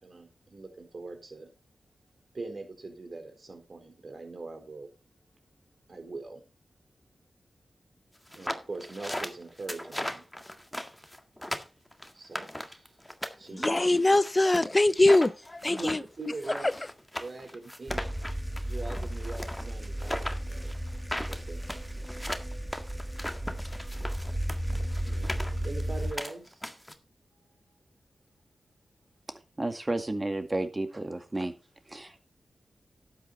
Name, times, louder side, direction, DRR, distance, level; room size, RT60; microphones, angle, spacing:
voice 1, 0.0-1.5 2.3-4.9 5.9-6.4 8.3-10.3 12.1-13.0 13.4-13.9 15.7-16.7 17.2-18.0 18.3-20.7 21.2-21.8 24.7-26.7, right 3 dB, 55° right, 4.1 m, -42 dB
sound 1, 8.3-13.3 13.6-26.9, left 1 dB, 5° left, 1.8 m, -37 dB
voice 2, 13.6-16.0, left 2 dB, 30° left, 0.6 m, -22 dB
sound 2, 17.9-26.1, equal, 10° right, 2.3 m, -34 dB
voice 3, 29.6-31.5 31.9-32.2, right 2 dB, 30° right, 2.0 m, -32 dB
12.0 x 9.0 x 4.2 m
cardioid pair, 50°, 0 cm